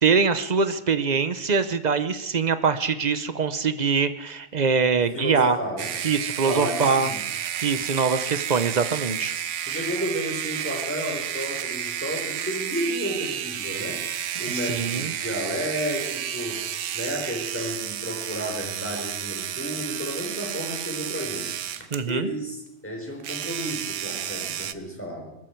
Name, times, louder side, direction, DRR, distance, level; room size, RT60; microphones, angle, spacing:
voice 1, 0.0-5.6 6.0-7.1 7.6-9.3 14.5-15.1 21.9-22.3, right 5 dB, 35° right, 12 dB, 0.9 m, -23 dB
voice 2, 5.1-5.9 6.4-7.2 9.7-14.0 14.4-21.6 22.0-25.4, equal, 10° left, 0 dB, 4.4 m, -32 dB
sound 1, 5.8-22.1 23.2-24.7, right 10 dB, 65° right, 1.0 m, -31 dB
22.5 x 14.0 x 4.6 m, 0.85 s
omnidirectional pair, 1.4 m